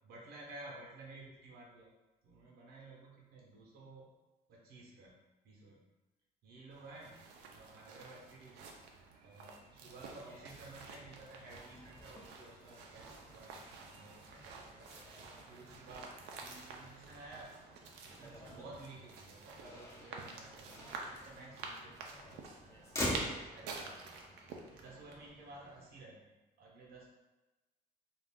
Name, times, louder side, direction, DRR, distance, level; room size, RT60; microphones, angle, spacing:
voice 1, 0.0-1.9 2.2-4.0 4.5-5.2 5.4-5.8 6.4-8.6 9.2-14.9 15.5-17.5 18.0-22.5 23.4-24.1 24.8-27.1, right 2 dB, 65° right, -3 dB, 0.8 m, -54 dB
sound 1, 6.7-25.3, right 4 dB, 85° right, 0.5 m, -50 dB
Motor vehicle (road), 10.1-26.0, left 1 dB, 15° left, 0.6 m, -47 dB
2.5 x 2.4 x 3.4 m, 1.1 s
cardioid pair, 110°, 17 cm